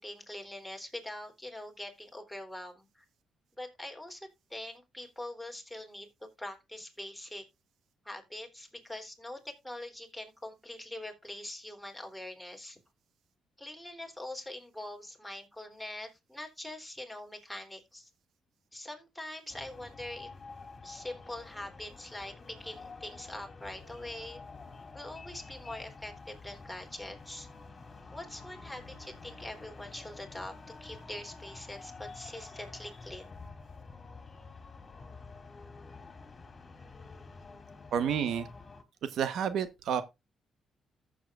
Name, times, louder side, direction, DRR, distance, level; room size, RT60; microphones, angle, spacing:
voice 1, 0.0-3.1 3.6-7.5 8.1-12.8 13.6-18.1 18.7-20.3 20.8-24.4 24.9-27.5 28.1-30.5 30.8-33.4, left 1 dB, 5° left, 3.4 m, -43 dB
sound 1, 19.5-38.8, left 4 dB, 30° left, 2.8 m, -49 dB
voice 2, 37.9-38.5 39.1-40.0, right 8 dB, 70° right, 1.1 m, -30 dB
14.5 x 7.7 x 2.5 m
cardioid pair, 90°, 0 cm